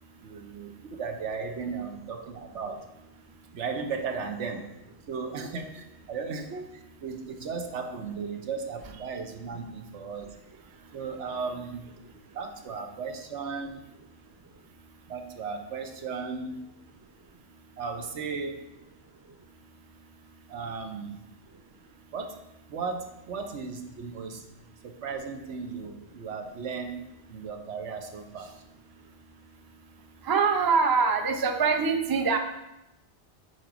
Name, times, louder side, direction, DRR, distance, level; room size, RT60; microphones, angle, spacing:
voice 1, 0.2-2.9 3.5-4.7 5.1-10.3 10.9-11.9 12.3-13.8 15.1-16.7 17.8-18.6 20.5-21.2 22.1-22.4 22.7-24.5 24.8-28.6, right 5 dB, 90° right, 5 dB, 1.2 m, -36 dB
voice 2, 30.2-32.4, right 5 dB, 30° right, 6 dB, 0.4 m, -23 dB
7.6 x 4.2 x 5.1 m, 0.90 s
omnidirectional pair, 1.2 m